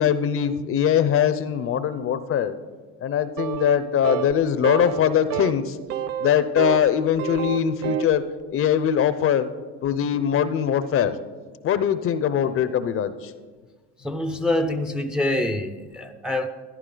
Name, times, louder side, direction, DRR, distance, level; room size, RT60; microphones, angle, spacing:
voice 1, 0.0-2.5 3.0-5.8 6.2-8.2 8.5-9.5 9.8-11.2 11.6-13.3, left 9 dB, 40° left, 13 dB, 0.7 m, -22 dB
sound 1, 3.4-3.8 4.0-4.3 4.6-5.0 5.3-5.5 5.9-6.9 7.2-8.1, right 10 dB, 65° right, 0.7 m, -28 dB
voice 2, 14.0-16.5, left 1 dB, ahead, 8 dB, 0.6 m, -25 dB
13.5 x 10.5 x 3.9 m, 1.4 s
supercardioid pair, 105°, 35 cm